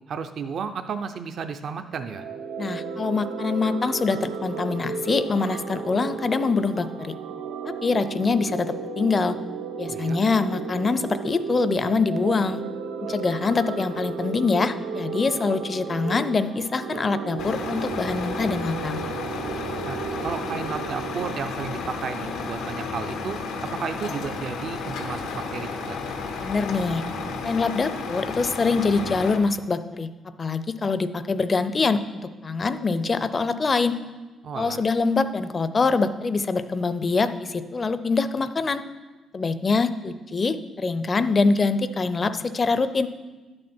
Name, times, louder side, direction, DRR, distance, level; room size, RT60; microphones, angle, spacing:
voice 1, 0.1-2.2 9.9-10.2 19.8-23.4 23.7-26.0 34.4-34.8, right 6 dB, 60° right, 8 dB, 0.5 m, -33 dB
sound 1, 2.0-21.3, right 5 dB, 85° right, 0.8 m, -34 dB
voice 2, 2.6-7.1 7.7-9.4 9.8-12.6 13.0-19.1 26.4-27.0 27.4-30.1 30.4-33.9 34.5-38.8 39.3-43.1, left 4 dB, 35° left, 12 dB, 0.5 m, -24 dB
Truck, 17.4-29.4, left 4 dB, 90° left, 0.9 m, -32 dB
11.0 x 6.5 x 4.4 m, 1.2 s
cardioid pair, 90°, 0 cm